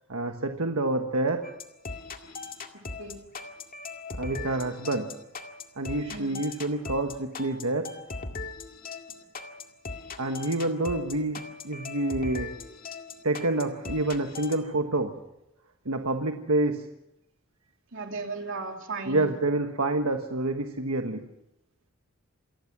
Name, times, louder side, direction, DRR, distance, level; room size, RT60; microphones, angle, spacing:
voice 1, 0.0-1.4 4.1-5.2 5.8-7.9 10.2-12.5 13.2-15.2 15.8-16.9 19.1-21.3, right 2 dB, 90° right, 5 dB, 1.4 m, -28 dB
sound 1, 1.4-14.6, left 3 dB, 45° left, 2.0 m, -39 dB
voice 2, 17.9-19.4, right 3 dB, 65° right, 3 dB, 3.3 m, -36 dB
28.0 x 20.0 x 6.1 m, 0.87 s
head